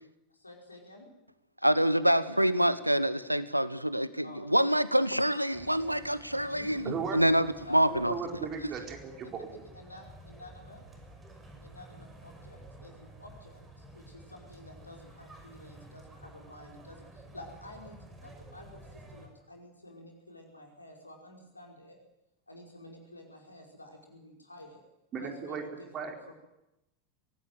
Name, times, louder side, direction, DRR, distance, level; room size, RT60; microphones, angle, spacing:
voice 1, 0.3-1.1 2.5-2.8 4.2-4.5 4.9-5.2 6.4-6.9 7.7-7.9 9.2-9.4 9.7-10.8 11.6-22.0 22.5-24.8 25.2-26.3, left 1 dB, 85° left, 5.3 m, -51 dB
voice 2, 1.6-8.1, equal, 90° right, 1.0 m, -26 dB
sound 1, 5.5-19.3, right 1 dB, 15° right, 5.9 m, -51 dB
voice 3, 6.8-7.2 7.9-9.5 25.1-25.6 25.9-26.1, right 6 dB, 30° right, 4.7 m, -36 dB
23.5 x 17.5 x 9.4 m
figure-of-eight pair, 85°, 0 cm